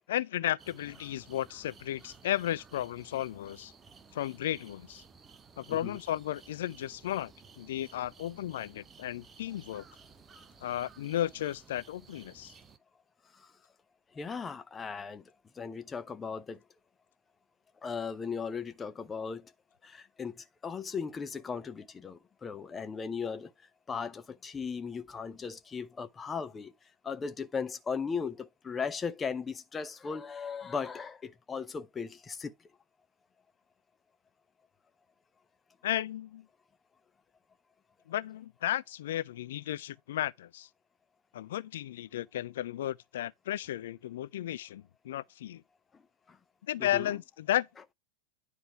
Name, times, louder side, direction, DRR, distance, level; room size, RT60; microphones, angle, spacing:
voice 1, 0.1-3.7 4.1-5.0 5.6-7.3 7.6-9.8 10.6-12.5 35.8-36.5 38.1-40.7 41.3-45.6 46.7-47.7, left 12 dB, 60° left, 0.4 m, -34 dB
sound 1, 0.6-12.8, right 5 dB, 20° right, 0.7 m, -56 dB
voice 2, 14.1-15.2 15.6-16.6 17.8-19.5 19.8-23.5 23.9-26.7 27.0-32.5 46.3-46.4 46.8-47.1, left 5 dB, 15° left, 0.7 m, -37 dB
10.0 x 3.4 x 4.4 m
figure-of-eight pair, 90°, 0 cm